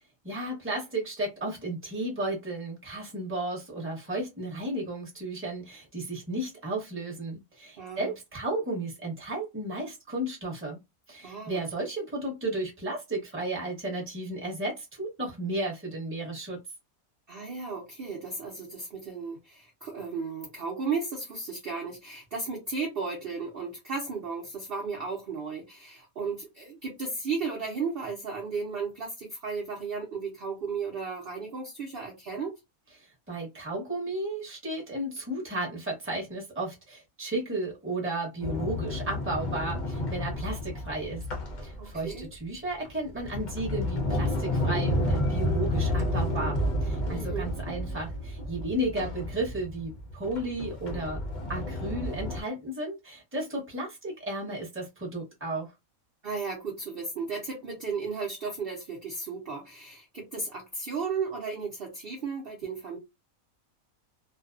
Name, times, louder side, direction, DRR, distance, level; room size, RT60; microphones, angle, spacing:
voice 1, 0.0-10.8 11.1-16.6 33.0-41.2 41.6-51.2 51.5-55.7, right 1 dB, 10° right, 0.9 m, -34 dB
voice 2, 7.8-8.1 11.2-11.6 17.3-32.5 41.8-42.3 47.1-47.5 56.2-63.0, right 4 dB, 55° right, 0.7 m, -34 dB
Sliding door, 38.4-42.2 42.8-52.4, left 1 dB, 50° left, 0.5 m, -31 dB
2.5 x 2.2 x 2.4 m
omnidirectional pair, 1.5 m